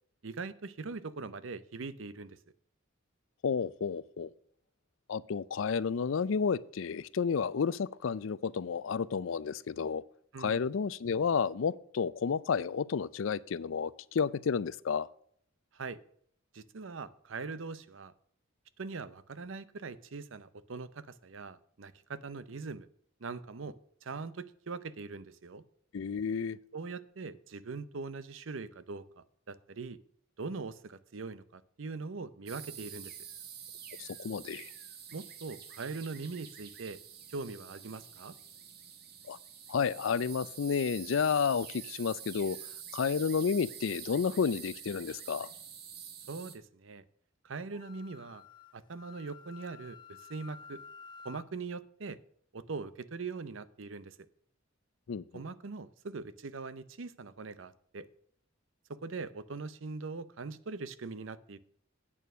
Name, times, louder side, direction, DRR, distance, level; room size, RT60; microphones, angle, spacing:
voice 1, 0.2-2.4 10.3-10.6 15.7-16.0 16.5-18.1 18.8-22.9 23.2-25.6 26.7-30.0 30.4-33.1 35.1-37.0 37.3-38.3 46.3-47.0 47.4-48.4 48.7-50.8 51.2-52.2 52.5-54.2 55.3-58.1 58.9-61.6, right 4 dB, 70° right, 0.7 m, -42 dB
voice 2, 3.4-4.3 5.1-10.0 10.4-15.1 25.9-26.6 34.0-34.7 39.3-39.4 39.7-42.6 42.9-45.5 55.1-55.4, left 6 dB, 70° left, 0.4 m, -31 dB
sound 1, 32.5-46.5, right 8 dB, 50° right, 1.3 m, -47 dB
Wind instrument woodwind instrument, 47.7-51.5, left 6 dB, 25° left, 0.6 m, -52 dB
8.6 x 6.8 x 6.0 m
head